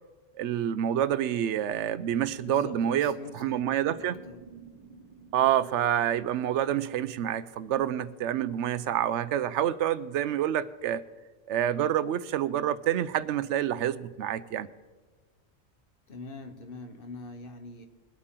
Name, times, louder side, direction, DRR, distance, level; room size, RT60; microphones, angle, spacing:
voice 1, 0.4-4.2 5.3-11.1 11.5-14.7, right 10 dB, 85° right, 16 dB, 0.9 m, -28 dB
sound 1, 1.9-6.9, right 5 dB, 35° right, 0.8 m, -52 dB
voice 2, 2.4-4.4 16.1-17.8, left 3 dB, 55° left, 6 dB, 1.3 m, -43 dB
22.0 x 8.5 x 3.8 m, 1.4 s
omnidirectional pair, 1.2 m